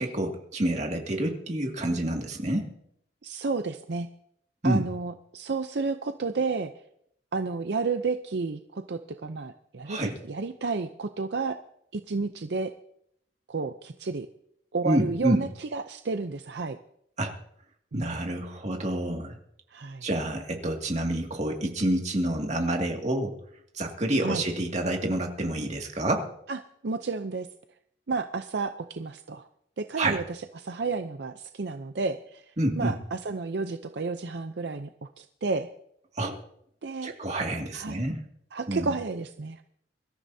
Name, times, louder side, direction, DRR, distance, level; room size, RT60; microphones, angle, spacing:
voice 1, 0.0-2.7 4.6-4.8 9.8-10.1 14.8-15.4 17.2-17.3 17.9-19.4 20.0-23.4 23.7-26.3 30.0-30.2 32.6-33.0 36.2-36.4 37.0-38.2 38.7-38.8, right 1 dB, 40° right, 2 dB, 2.2 m, -28 dB
voice 2, 3.2-4.1 4.6-6.7 7.3-11.6 11.9-12.7 13.5-14.3 14.7-16.8 17.9-18.1 19.7-20.0 24.2-24.4 26.5-27.5 28.1-29.5 29.8-32.4 32.8-34.9 35.2-35.7 36.8-37.1 37.7-38.0 38.5-39.6, right 4 dB, 70° right, 8 dB, 0.6 m, -31 dB
24.0 x 13.5 x 2.8 m, 0.72 s
head